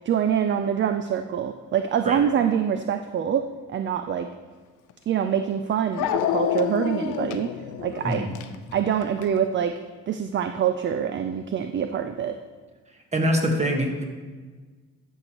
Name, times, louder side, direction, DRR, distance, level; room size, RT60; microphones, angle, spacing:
voice 1, 0.1-4.3 5.1-7.5 7.8-8.2 8.7-9.8 10.1-12.4, right 8 dB, 40° right, 8 dB, 0.4 m, -25 dB
Dog, 4.9-5.0 6.0-9.4, left 10 dB, 85° left, 0.5 m, -28 dB
voice 2, 13.1-14.0, equal, 20° right, 2 dB, 1.5 m, -24 dB
12.0 x 6.4 x 3.0 m, 1.4 s
cardioid pair, 90°, 30 cm